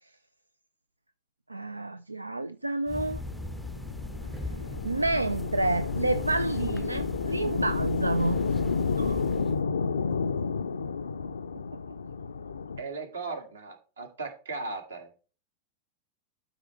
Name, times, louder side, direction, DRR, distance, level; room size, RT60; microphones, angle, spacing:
voice 1, 1.5-3.2 4.8-8.4 9.0-9.2 11.5-11.8, right 2 dB, 85° right, 0.3 m, -29 dB
sound 1, 2.9-9.6, left 1 dB, ahead, 0.5 m, -39 dB
sound 2, 3.3-12.8, left 5 dB, 70° left, 0.4 m, -31 dB
voice 2, 12.8-15.1, right 3 dB, 70° right, 1.7 m, -37 dB
12.0 x 4.7 x 3.2 m
figure-of-eight pair, 90°, 0 cm